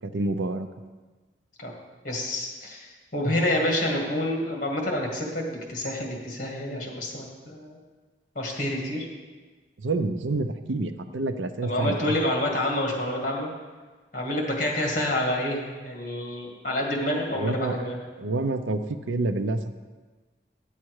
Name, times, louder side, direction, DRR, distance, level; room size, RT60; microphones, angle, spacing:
voice 1, 0.0-0.7 9.8-12.1 17.3-17.8 18.2-19.6, right 2 dB, 90° right, 9 dB, 0.6 m, -28 dB
voice 2, 2.0-7.8 8.4-9.1 11.6-13.5 14.1-18.0, left 1 dB, 45° left, -1 dB, 1.8 m, -28 dB
9.9 x 7.3 x 4.7 m, 1.3 s
head